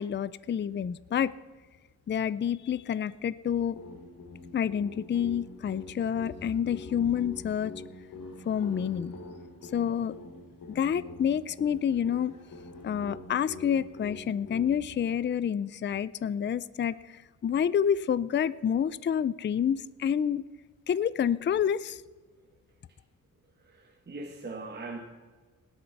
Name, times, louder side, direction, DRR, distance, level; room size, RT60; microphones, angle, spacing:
voice 1, 0.0-1.3 2.1-3.8 4.5-7.7 8.5-9.1 9.7-10.1 10.7-12.3 12.8-20.4 20.9-22.0, left 8 dB, 35° left, 18 dB, 0.4 m, -28 dB
sound 1, 3.8-14.7, left 2 dB, 80° left, 3.7 m, -45 dB
voice 2, 23.6-25.0, right 3 dB, 30° right, 1 dB, 1.6 m, -40 dB
17.5 x 12.5 x 5.9 m, 1.4 s
wide cardioid pair, 150°, 32 cm